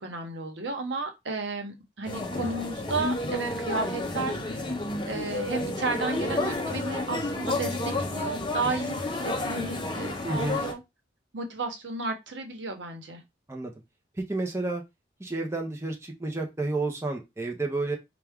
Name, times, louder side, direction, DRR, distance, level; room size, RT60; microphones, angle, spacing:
voice 1, 0.0-4.7 5.1-10.8 11.3-13.2, right 3 dB, 80° right, 4 dB, 0.9 m, -33 dB
sound 1, 2.0-10.7, left 2 dB, 25° left, 0.6 m, -31 dB
voice 2, 10.2-10.6 13.5-13.7 14.2-14.8 15.2-18.0, right 2 dB, 15° right, 1 dB, 0.7 m, -30 dB
4.5 x 2.3 x 3.5 m, 0.21 s
head